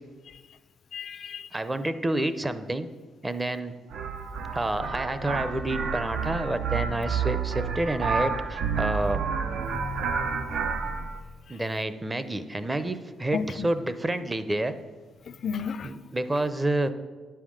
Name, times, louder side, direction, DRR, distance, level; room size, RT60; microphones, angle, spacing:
voice 1, 0.9-1.5 9.7-10.6 13.3-13.7 15.4-15.9, left 6 dB, 55° left, 15 dB, 0.4 m, -34 dB
voice 2, 1.5-2.9 3.2-3.7 4.5-9.2 11.5-14.7 15.8-16.9, right 1 dB, 15° right, 11 dB, 0.7 m, -29 dB
sound 1, 3.9-11.2, right 5 dB, 75° right, 0.8 m, -30 dB
9.6 x 5.7 x 6.4 m, 1.4 s
cardioid pair, 90°, 0 cm